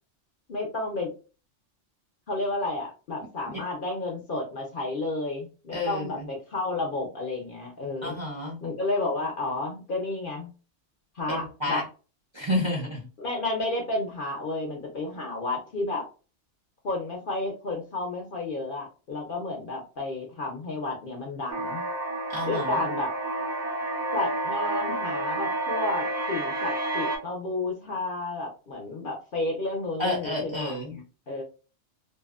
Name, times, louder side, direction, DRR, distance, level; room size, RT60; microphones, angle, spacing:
voice 1, 0.5-1.1 2.3-8.2 8.6-10.5 11.1-11.8 13.2-16.0 16.8-21.8 22.5-23.1 24.1-31.4, left 2 dB, 50° left, 0 dB, 0.7 m, -31 dB
voice 2, 5.7-6.3 8.0-8.6 11.3-11.8 12.3-13.1 22.3-22.8 30.0-31.0, left 1 dB, 30° right, -3 dB, 0.6 m, -30 dB
sound 1, 21.5-27.2, right 2 dB, 80° right, 1.1 m, -30 dB
2.7 x 2.1 x 2.3 m, 0.34 s
omnidirectional pair, 1.3 m